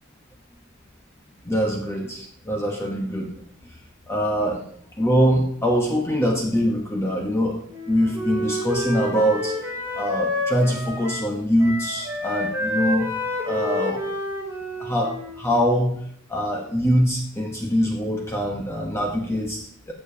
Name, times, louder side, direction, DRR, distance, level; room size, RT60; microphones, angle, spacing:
voice 1, 1.4-3.3 4.1-4.6 5.0-7.6 7.9-9.6 9.9-13.1 13.4-14.0 14.8-15.9 16.3-19.9, equal, 15° left, 0 dB, 1.0 m, -23 dB
Wind instrument woodwind instrument, 7.7-11.3 11.6-15.5, left 1 dB, 15° right, 3.1 m, -29 dB
15.0 x 6.9 x 2.8 m, 0.63 s
head